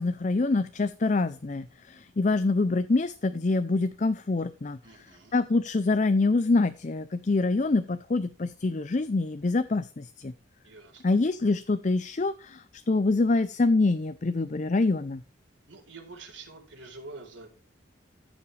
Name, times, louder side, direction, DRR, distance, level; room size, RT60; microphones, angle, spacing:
voice 1, 0.0-4.8 5.3-10.3 11.0-15.2, left 3 dB, 35° left, 13 dB, 0.5 m, -25 dB
voice 2, 4.8-5.3 10.6-11.0 15.7-17.5, right 3 dB, 70° right, 2 dB, 4.1 m, -46 dB
14.0 x 7.3 x 3.3 m, 0.35 s
head